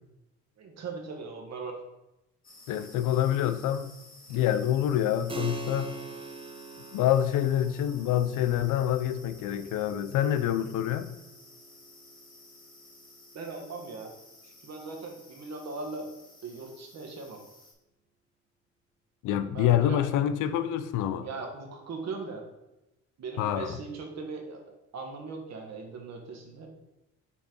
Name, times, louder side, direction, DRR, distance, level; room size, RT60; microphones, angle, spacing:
voice 1, 0.6-1.8 13.3-14.1 14.4-16.1 16.4-17.4 19.5-20.0 21.2-22.4 23.2-26.7, right 4 dB, 60° right, 1.5 m, -39 dB
sound 1, 2.4-17.7, left 2 dB, 30° left, 1.9 m, -54 dB
voice 2, 2.7-3.9 4.3-5.9 6.9-11.1 19.2-21.3 23.4-23.8, left 11 dB, 90° left, 0.5 m, -26 dB
Keyboard (musical), 5.3-15.5, right 4 dB, 20° right, 0.7 m, -45 dB
5.7 x 4.5 x 4.5 m
cardioid pair, 90°, 30 cm